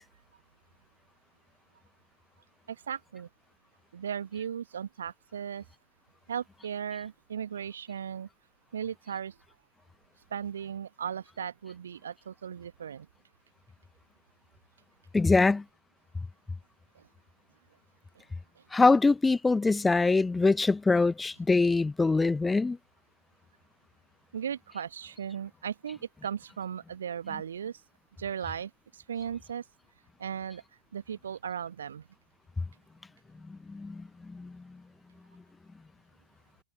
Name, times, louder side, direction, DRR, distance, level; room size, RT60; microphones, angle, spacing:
voice 1, 2.7-3.3 3.9-5.6 6.3-8.3 8.7-9.4 10.3-13.1 16.9-17.1 18.1-18.2 18.5-18.6 24.3-27.8 28.2-29.7 30.2-30.6 30.9-32.1, right 8 dB, 65° right, 1.5 m, -37 dB
voice 2, 15.1-15.6 18.7-22.8 33.5-34.5, left 3 dB, 10° left, 0.8 m, -24 dB
figure-of-eight pair, 90°, 0 cm